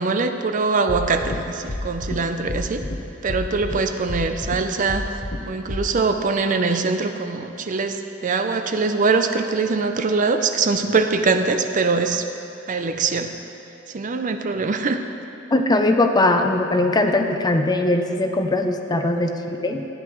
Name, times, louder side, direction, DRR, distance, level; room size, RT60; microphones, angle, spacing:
voice 1, 0.0-2.8 3.2-5.1 5.5-12.3 12.7-13.3 13.9-15.1 18.9-19.1, right 4 dB, 40° right, 7 dB, 0.5 m, -22 dB
sound 1, 0.9-1.4 1.7-2.2 2.5-3.0 3.3-3.8 4.1-4.6 4.9-5.4 5.7-5.8, left 1 dB, 45° left, 0.8 m, -29 dB
voice 2, 15.5-19.9, left 2 dB, 20° left, 5 dB, 0.5 m, -20 dB
14.0 x 9.5 x 3.1 m, 2.9 s
head